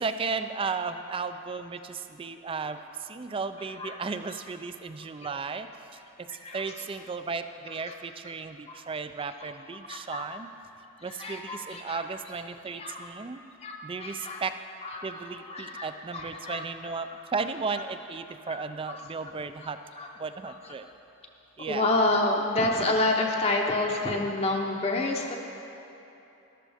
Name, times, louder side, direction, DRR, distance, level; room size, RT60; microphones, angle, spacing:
voice 1, 0.0-5.7 6.5-10.5 11.0-13.4 13.8-14.5 15.0-19.8 20.2-20.9 21.6-21.9, right 4 dB, 25° right, 10 dB, 0.3 m, -35 dB
voice 2, 6.3-6.6 8.7-8.8 9.4-9.5 9.9-10.3 11.1-12.0 12.8-13.0 13.6-14.4 14.8-16.6 17.1-17.2 18.5-18.6 18.9-19.0 20.0-20.1 21.7-25.4, left 2 dB, 30° left, 0 dB, 0.7 m, -29 dB
13.5 x 12.0 x 3.5 m, 2.9 s
head